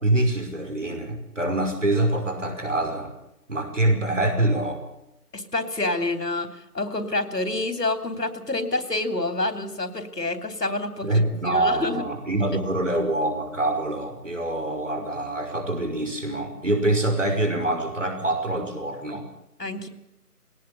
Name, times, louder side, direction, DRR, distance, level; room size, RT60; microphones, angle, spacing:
voice 1, 0.0-3.1 3.5-4.8 11.0-19.2, right 1 dB, 50° right, 5 dB, 5.5 m, -25 dB
voice 2, 5.3-12.0 19.6-19.9, left 2 dB, 85° left, 9 dB, 3.4 m, -28 dB
20.0 x 18.5 x 8.5 m, 0.86 s
figure-of-eight pair, 180°, 47 cm